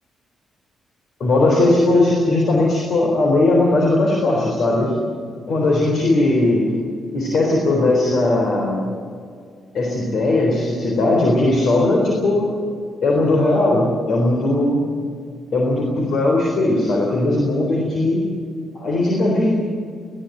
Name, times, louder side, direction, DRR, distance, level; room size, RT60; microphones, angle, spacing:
voice 1, 1.2-5.0 5.5-6.7 7.1-8.8 9.7-12.5 13.0-14.8 15.5-18.2 18.7-19.5, left 2 dB, 50° left, -1 dB, 3.9 m, -18 dB
20.0 x 16.0 x 9.2 m, 2.3 s
figure-of-eight pair, 40°, 0 cm